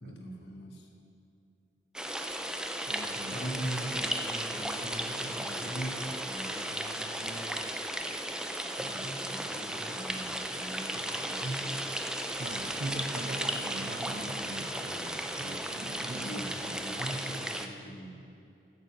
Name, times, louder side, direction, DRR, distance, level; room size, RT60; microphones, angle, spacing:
voice 1, 0.0-0.9 3.3-7.7 8.7-11.9 16.2-18.3, right 1 dB, 75° left, 2 dB, 1.3 m, -41 dB
sound 1, 1.9-17.7, right 1 dB, 5° right, 0.4 m, -35 dB
voice 2, 2.9-3.4 12.4-16.4, right 1 dB, 65° right, 6 dB, 0.8 m, -41 dB
9.0 x 6.7 x 7.3 m, 2.6 s
head